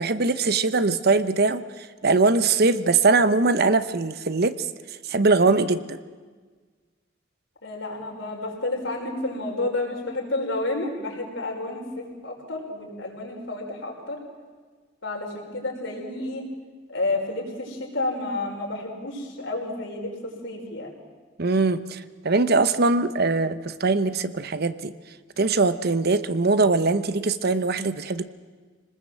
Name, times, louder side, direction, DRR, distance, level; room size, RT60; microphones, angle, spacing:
voice 1, 0.0-1.6 2.0-4.5 5.1-6.0 21.4-24.9 25.4-28.2, right 3 dB, 55° right, 13 dB, 0.9 m, -21 dB
voice 2, 7.6-14.2 15.0-16.4 16.9-20.1 20.4-20.9, left 2 dB, 70° left, 0 dB, 5.5 m, -30 dB
27.0 x 19.5 x 7.8 m, 1.5 s
head